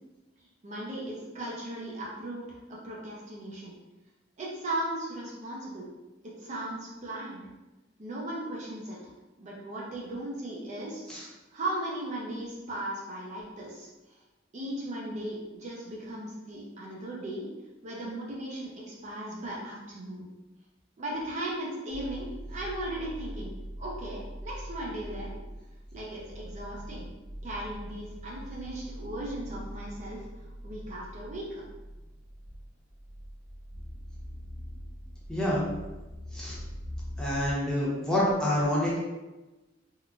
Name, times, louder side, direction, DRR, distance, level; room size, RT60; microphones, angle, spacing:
voice 1, 0.6-3.8 4.4-5.9 6.2-7.4 8.0-9.1 9.4-11.0 11.5-14.2 14.5-17.5 17.8-20.3 21.0-23.5 23.8-25.4 25.9-27.1 27.4-30.3 30.6-31.6, right 1 dB, 40° right, -4 dB, 0.5 m, -37 dB
sound 1, 21.9-37.5, equal, 75° right, 0.7 m, -42 dB
voice 2, 35.3-35.6 36.3-36.6 37.2-39.0, left 1 dB, 5° left, -7 dB, 0.7 m, -27 dB
3.7 x 2.1 x 2.3 m, 1.1 s
head